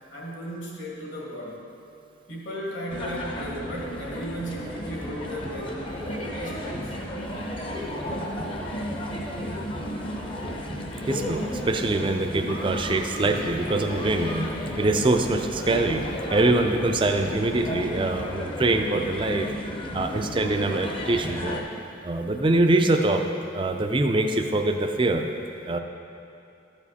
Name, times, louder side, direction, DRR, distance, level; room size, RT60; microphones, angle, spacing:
voice 1, 0.1-1.6 2.3-7.1, equal, 65° left, -4 dB, 2.0 m, -36 dB
sound 1, 2.9-21.6, equal, 25° left, 0.7 m, -33 dB
voice 2, 11.1-16.0 16.3-19.5 19.9-21.6 22.0-23.2 23.5-25.2 25.7-25.8, right 2 dB, 25° right, 5 dB, 0.4 m, -24 dB
12.5 x 7.0 x 4.2 m, 2.7 s
head